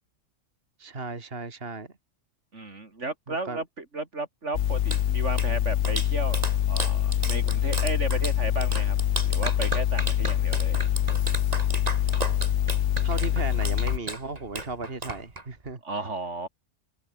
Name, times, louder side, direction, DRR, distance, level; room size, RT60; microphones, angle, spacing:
voice 1, 0.8-1.9 3.4-3.6 13.0-15.8, right 3 dB, 50° right, 2.7 m, -35 dB
voice 2, 2.5-9.0 9.3-10.8 15.8-16.5, right 3 dB, 70° right, 3.9 m, -34 dB
sound 1, 4.5-14.0, left 11 dB, 75° left, 1.0 m, -25 dB
Clapping, 4.6-15.7, right 2 dB, 30° right, 2.7 m, -35 dB
omnidirectional pair, 1.3 m